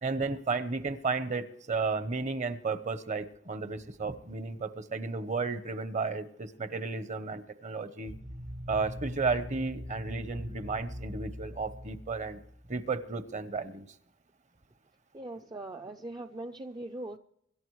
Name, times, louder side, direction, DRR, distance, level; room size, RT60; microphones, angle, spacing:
voice 1, 0.0-8.1 8.7-12.4 12.7-13.9, right 4 dB, 40° right, 12 dB, 0.9 m, -33 dB
sound 1, 8.1-12.7, equal, 90° right, 4.8 m, -42 dB
voice 2, 15.1-17.2, right 2 dB, 20° right, 4 dB, 0.5 m, -40 dB
25.0 x 12.0 x 3.2 m, 0.70 s
head